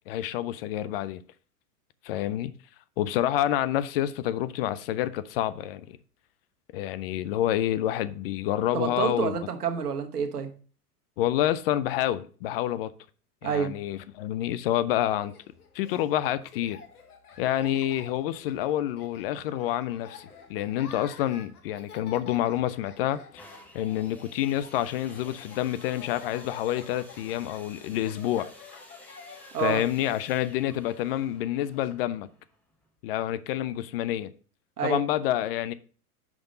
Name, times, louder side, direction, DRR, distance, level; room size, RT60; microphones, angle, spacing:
voice 1, 0.1-1.2 2.0-2.5 3.0-6.0 6.7-9.4 11.2-12.9 13.4-15.3 15.7-16.8 17.4-23.4 23.7-28.5 29.6-32.3 33.0-34.3 34.8-35.7, left 12 dB, 40° left, 0.5 m, -28 dB
voice 2, 8.7-10.5 13.4-13.7 29.5-29.8 34.8-35.0, right 7 dB, 80° right, 1.3 m, -28 dB
Laughter, 15.1-31.9, left 5 dB, 80° left, 1.4 m, -50 dB
sound 1, 23.4-33.1 33.8-33.9, equal, 5° left, 1.3 m, -53 dB
6.0 x 5.2 x 5.1 m
hypercardioid pair, 105°, 45 cm